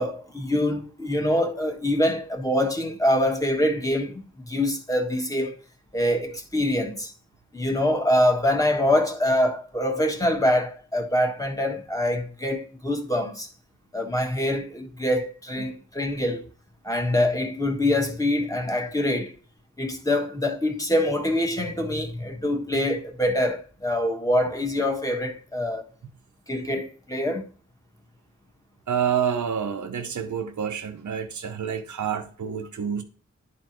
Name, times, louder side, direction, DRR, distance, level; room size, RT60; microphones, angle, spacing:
voice 1, 0.0-5.6 5.9-7.1 7.5-13.5 13.9-16.5 16.8-19.3 19.8-25.8 26.5-27.5, left 1 dB, 10° left, 1.3 m, -25 dB
voice 2, 28.9-33.0, right 8 dB, 75° right, 0.7 m, -28 dB
11.0 x 4.3 x 3.0 m
wide cardioid pair, 80°, 30 cm